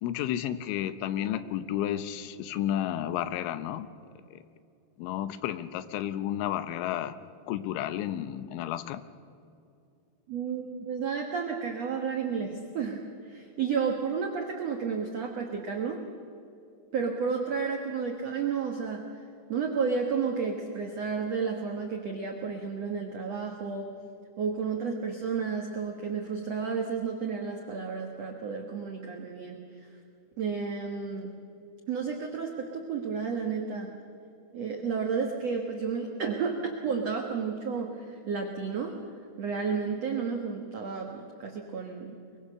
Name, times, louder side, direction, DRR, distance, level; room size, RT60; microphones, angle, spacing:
voice 1, 0.0-3.9 5.0-7.2 7.5-9.0, left 11 dB, 85° left, 13 dB, 3.3 m, -32 dB
voice 2, 10.3-16.0 16.9-19.0 19.5-23.9 24.4-29.6 30.4-31.3 31.9-33.9 34.5-39.0 39.4-42.2, right 5 dB, 85° right, 2 dB, 1.4 m, -32 dB
24.0 x 23.0 x 6.6 m, 2.6 s
omnidirectional pair, 5.4 m